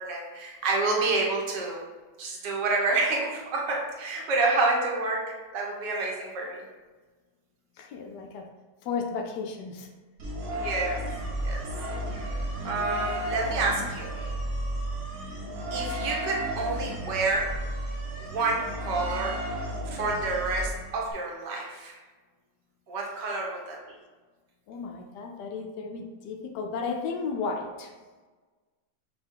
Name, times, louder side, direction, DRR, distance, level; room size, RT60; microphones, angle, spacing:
voice 1, 0.0-1.8 2.2-5.2 5.5-6.7 10.5-11.0 11.4-11.6 12.1-14.3 15.7-17.5 18.3-19.4 19.9-22.0 22.9-24.0, right 3 dB, 75° right, -1 dB, 1.5 m, -28 dB
voice 2, 7.8-8.5 8.8-9.9 24.7-27.9, left 5 dB, 75° left, 4 dB, 1.1 m, -34 dB
sound 1, 10.2-21.1, right 1 dB, 60° right, 1.0 m, -33 dB
5.5 x 2.3 x 3.5 m, 1.3 s
omnidirectional pair, 1.9 m